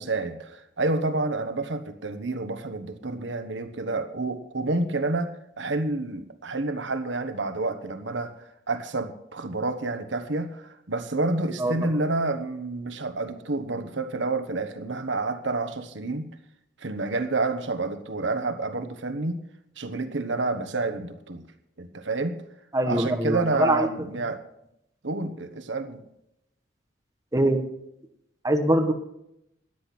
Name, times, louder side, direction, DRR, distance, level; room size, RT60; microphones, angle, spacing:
voice 1, 0.0-16.3 16.8-19.4 19.8-21.5 21.8-22.4 22.9-24.4 25.0-26.0, right 2 dB, 80° right, 9 dB, 1.3 m, -29 dB
voice 2, 22.7-23.9 27.3-27.6 28.4-28.9, right 1 dB, 20° right, 5 dB, 1.3 m, -23 dB
13.5 x 10.5 x 6.1 m, 0.79 s
head